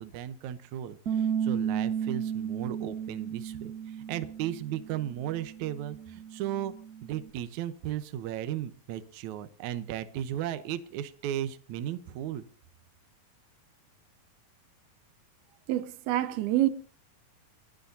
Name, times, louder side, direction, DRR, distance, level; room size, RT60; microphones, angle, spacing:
voice 1, 0.0-3.7 4.1-6.7 7.0-12.5, right 11 dB, 70° right, 1.9 m, -35 dB
Bass guitar, 1.1-7.3, right 8 dB, 55° right, 1.0 m, -34 dB
voice 2, 15.7-16.7, right 14 dB, 90° right, 2.8 m, -26 dB
30.0 x 10.5 x 2.7 m
omnidirectional pair, 4.3 m